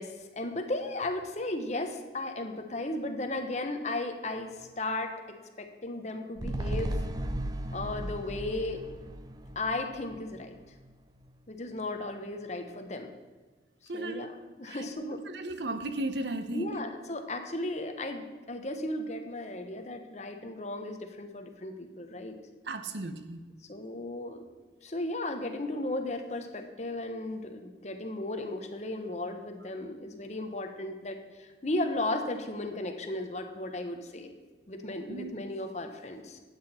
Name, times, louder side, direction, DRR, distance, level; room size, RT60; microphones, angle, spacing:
voice 1, 0.0-7.0 7.7-8.9 9.5-10.6 11.5-13.1 13.8-15.2 16.5-22.4 23.7-24.4 24.8-34.3 34.7-36.4, left 2 dB, 40° left, 6 dB, 1.1 m, -35 dB
sound 1, 6.4-10.9 11.2-11.3, right 1 dB, 20° right, 0.6 m, -36 dB
voice 2, 13.9-14.3 14.7-14.8 15.3-16.7 22.6-23.4 35.1-35.3, right 2 dB, 75° right, 9 dB, 0.9 m, -35 dB
12.0 x 8.9 x 4.3 m, 1.4 s
head